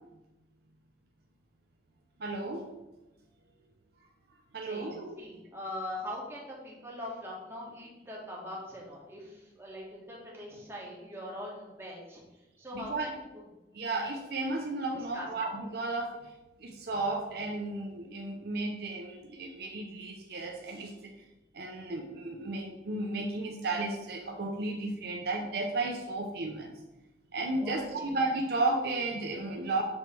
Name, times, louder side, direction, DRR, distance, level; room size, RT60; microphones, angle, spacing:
voice 1, 2.2-2.7 4.5-5.1 12.7-13.1 13.7-16.1 16.6-21.1 21.5-26.7 27.3-29.8, right 2 dB, 60° right, 3 dB, 0.6 m, -33 dB
voice 2, 4.6-12.2 12.6-13.2 14.9-15.3 27.6-28.2, left 1 dB, 15° right, -4 dB, 1.4 m, -42 dB
7.1 x 3.2 x 4.4 m, 1.0 s
head